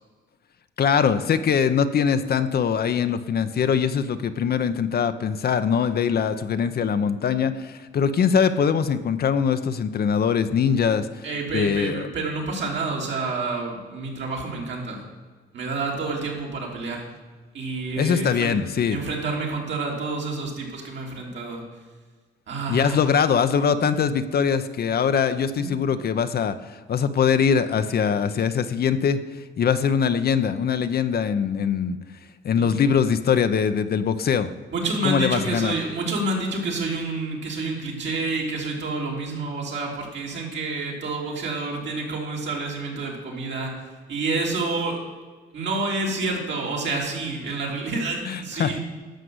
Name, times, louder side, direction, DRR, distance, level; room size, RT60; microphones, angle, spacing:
voice 1, 0.8-11.3 11.5-12.1 18.0-19.0 22.7-29.2 29.6-32.0 32.4-34.5 35.0-35.7 48.2-48.8, left 7 dB, 50° left, 10 dB, 0.7 m, -22 dB
voice 2, 11.2-15.0 15.5-17.1 17.5-18.6 18.9-21.6 22.5-23.0 25.5-25.7 32.5-32.7 34.7-43.7 44.1-45.0 45.5-48.8, right 3 dB, 65° right, -1 dB, 3.4 m, -28 dB
11.5 x 6.6 x 7.9 m, 1.4 s
cardioid pair, 90°, 20 cm